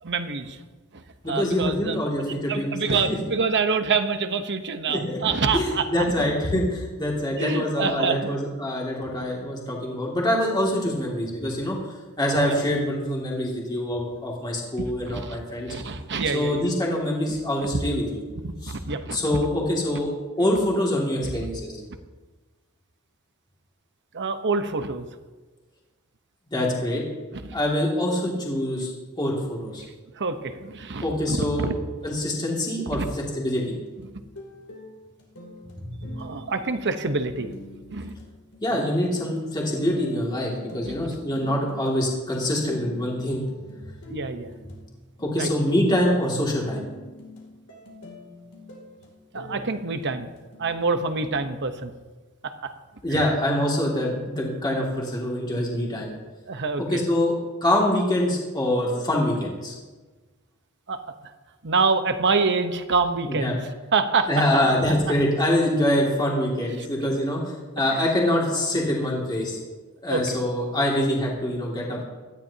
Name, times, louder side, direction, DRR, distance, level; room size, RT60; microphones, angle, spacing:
voice 1, 0.0-0.6 0.9-6.3 6.5-6.6 7.4-8.3 12.4-12.5 14.8-15.4 15.7-16.7 17.3-17.4 18.4-19.2 21.2-21.5 24.1-25.0 27.3-27.6 30.2-31.8 32.9-33.1 36.2-37.5 37.9-38.1 40.8-41.0 44.1-44.5 45.4-45.5 49.3-50.3 50.6-51.9 52.6-52.7 53.1-53.3 56.5-57.0 60.9-61.0 61.6-63.6 63.9-64.3 66.8-66.9 67.9-68.0 70.1-70.2, right 4 dB, 55° right, 8 dB, 1.0 m, -26 dB
voice 2, 1.2-2.7 3.0-3.2 4.9-5.2 5.5-11.8 12.2-15.7 16.3-18.2 18.6-18.7 19.1-20.1 20.4-21.7 26.5-27.0 27.5-28.9 29.2-29.8 31.0-31.7 32.0-33.7 35.8-36.1 38.6-43.4 45.2-46.8 53.0-56.1 56.8-57.3 57.6-59.7 63.3-63.6 64.3-69.6 70.0-72.0, left 1 dB, 20° left, -3 dB, 2.3 m, -25 dB
sound 1, 33.5-51.4, left 1 dB, 70° left, 3.0 m, -45 dB
18.0 x 13.0 x 2.8 m, 1.3 s
head